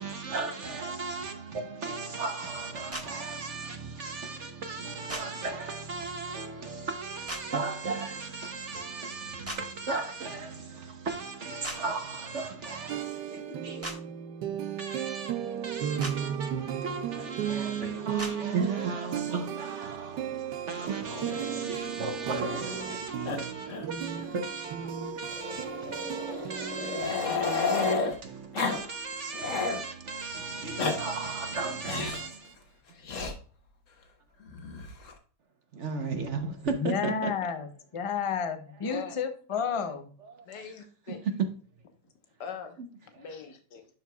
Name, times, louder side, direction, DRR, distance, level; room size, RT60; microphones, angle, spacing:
voice 1, 0.0-10.7 11.1-13.0 13.3-13.9 14.8-15.3 15.6-20.2 20.7-27.9 28.2-32.3 35.8-37.3, right 4 dB, 50° right, 1.0 m, -36 dB
sound 1, 2.9-3.1 5.1-5.2 7.3-7.4 9.4-9.6 11.6-11.8 13.8-14.0 16.0-16.1 18.2-18.3, right 1 dB, 10° right, 1.2 m, -36 dB
sound 2, 12.9-27.0, right 9 dB, 90° right, 1.4 m, -35 dB
Growling, 21.1-23.0 23.3-23.4 23.7-23.9 24.2-24.3 25.3-28.2 28.5-28.8 29.1-29.8 30.5-31.0 31.8-32.3 33.1-33.3 34.5-35.1, left 4 dB, 50° left, 1.3 m, -32 dB
voice 2, 36.7-37.7 37.9-40.0, left 6 dB, 35° left, 0.5 m, -31 dB
voice 3, 38.8-39.1 40.5-41.2 42.4-42.8 43.1-43.9, left 6 dB, 75° left, 1.7 m, -40 dB
11.5 x 4.6 x 2.3 m
omnidirectional pair, 1.9 m